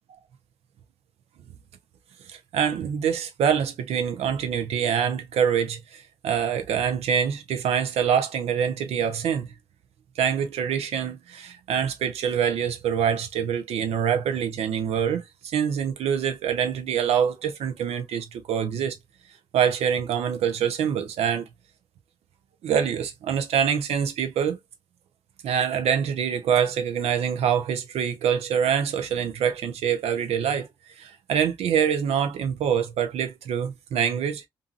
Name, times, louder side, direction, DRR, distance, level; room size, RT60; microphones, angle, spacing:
voice 1, 2.3-9.5 10.2-19.0 19.5-21.5 22.6-24.6 25.4-30.7 31.0-34.5, right 8 dB, 70° right, 0.7 m, -25 dB
2.6 x 2.5 x 2.5 m
hypercardioid pair, 50°, 11 cm